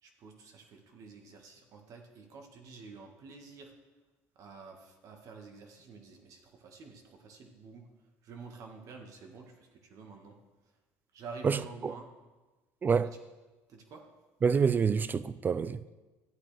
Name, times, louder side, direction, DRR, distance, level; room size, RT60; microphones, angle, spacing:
voice 1, 0.0-3.7 4.4-7.9 8.2-10.4 11.1-12.1 13.0-13.1 13.7-14.0, right 4 dB, 55° right, 1.7 m, -49 dB
voice 2, 11.4-11.9 12.8-13.1 14.4-15.8, right 6 dB, 25° right, 0.4 m, -27 dB
13.0 x 8.6 x 3.4 m
supercardioid pair, 95°, 7 cm